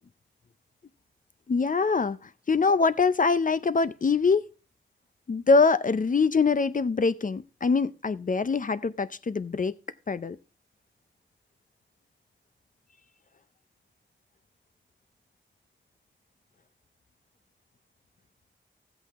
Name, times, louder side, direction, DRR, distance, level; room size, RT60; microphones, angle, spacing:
voice 1, 1.5-4.5 5.3-9.7 10.1-10.4, left 4 dB, 40° left, 0.5 m, -24 dB
13.5 x 8.1 x 3.5 m
wide cardioid pair, 80°, 20 cm